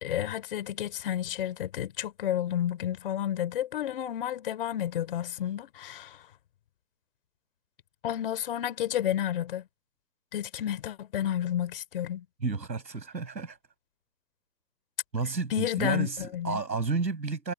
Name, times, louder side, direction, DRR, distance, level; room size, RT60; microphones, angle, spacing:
voice 1, 0.0-6.2 8.0-9.7 10.3-12.3 15.5-16.1 16.3-16.6, left 11 dB, 35° left, 3.8 m, -31 dB
voice 2, 12.4-13.6 15.1-17.5, right 4 dB, 85° right, 7.5 m, -31 dB
hypercardioid pair, 155°, 50 cm